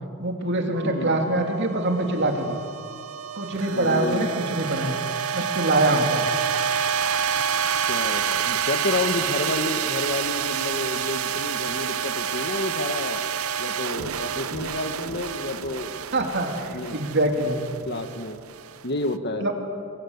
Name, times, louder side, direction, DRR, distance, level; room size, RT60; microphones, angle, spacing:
voice 1, 0.2-2.6 3.3-5.0 5.3-6.3 16.1-17.6 19.4-19.5, right 1 dB, 55° right, 3 dB, 3.0 m, -24 dB
sound 1, 0.7-19.1, right 7 dB, 75° right, 0.7 m, -28 dB
voice 2, 0.8-1.2 3.7-4.3 7.9-13.2 13.6-16.0 16.7-17.0 17.8-18.4 18.8-19.5, left 2 dB, 50° left, 7 dB, 1.6 m, -30 dB
22.5 x 22.0 x 8.2 m, 2.2 s
head